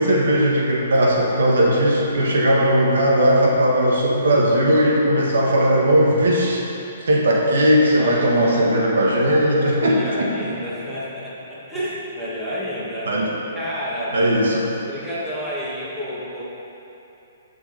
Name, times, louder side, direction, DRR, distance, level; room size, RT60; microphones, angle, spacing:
voice 1, 0.0-6.6 7.1-10.3 13.1-13.3 14.1-14.7, equal, 80° right, -2 dB, 1.6 m, -18 dB
voice 2, 8.0-8.7 9.8-13.1 13.5-14.2 14.9-16.4, equal, 5° right, -10 dB, 2.1 m, -30 dB
12.0 x 5.8 x 4.2 m, 3.0 s
hypercardioid pair, 150°, 0 cm